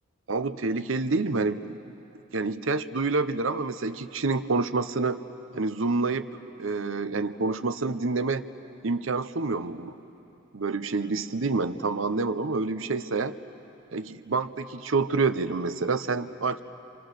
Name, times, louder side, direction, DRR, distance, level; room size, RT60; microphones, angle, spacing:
voice 1, 0.3-1.8 2.3-5.2 5.5-6.3 6.6-8.4 8.8-10.0 10.5-13.3 13.9-16.6, right 3 dB, 75° right, 12 dB, 0.8 m, -27 dB
28.5 x 27.5 x 6.6 m, 3.0 s
head